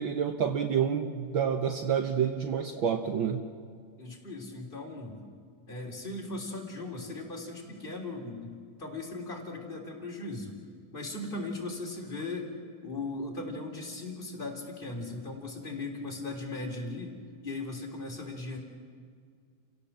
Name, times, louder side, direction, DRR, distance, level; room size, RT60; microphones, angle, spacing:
voice 1, 0.0-3.4, right 7 dB, 85° right, 6 dB, 1.1 m, -28 dB
voice 2, 4.0-5.2 5.7-10.6 10.9-12.5 12.8-17.2 17.4-18.6, left 2 dB, 15° left, 0 dB, 3.4 m, -38 dB
29.0 x 17.0 x 7.4 m, 2.1 s
omnidirectional pair, 3.5 m